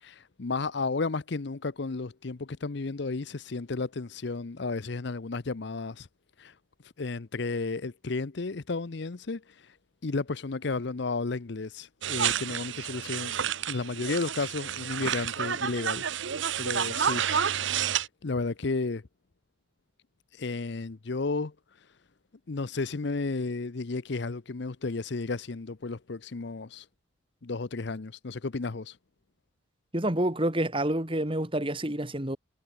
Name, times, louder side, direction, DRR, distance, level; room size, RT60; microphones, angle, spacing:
voice 1, 0.0-6.1 6.4-6.5 7.0-9.7 10.0-13.3 13.7-16.0 16.6-17.3 18.2-19.0 20.3-21.5 22.5-26.9 27.4-29.0, left 3 dB, 55° left, 0.7 m, -33 dB
sound 1, 12.0-18.1, right 8 dB, 65° right, 0.8 m, -30 dB
voice 2, 29.9-32.4, right 1 dB, 25° right, 2.2 m, -28 dB
head